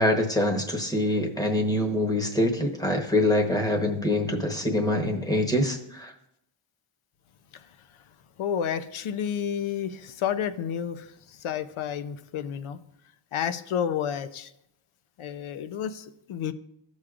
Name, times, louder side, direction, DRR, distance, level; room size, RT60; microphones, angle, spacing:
voice 1, 0.0-6.1, left 1 dB, 10° left, 3 dB, 1.0 m, -25 dB
voice 2, 8.4-11.1 11.4-12.8 13.3-14.5 15.2-16.5, left 8 dB, 75° left, 13 dB, 0.6 m, -30 dB
15.5 x 6.3 x 2.4 m, 0.80 s
wide cardioid pair, 160°, 49 cm